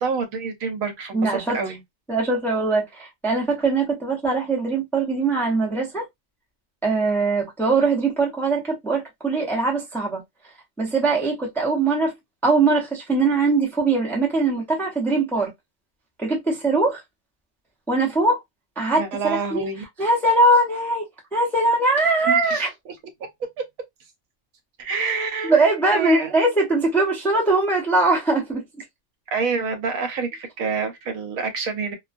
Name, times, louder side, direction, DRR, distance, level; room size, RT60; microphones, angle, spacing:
voice 1, 0.0-1.8 18.9-19.8 22.2-22.9 24.8-25.6 25.9-26.3 29.3-31.9, right 5 dB, 80° right, 1.1 m, -27 dB
voice 2, 1.1-1.6 2.1-6.1 6.8-10.2 10.8-12.1 12.4-15.5 16.2-17.0 17.9-18.4 18.8-19.6 20.0-21.1 21.3-22.7 25.4-28.6, right 3 dB, ahead, 0.5 m, -21 dB
2.3 x 2.2 x 2.4 m
omnidirectional pair, 1.4 m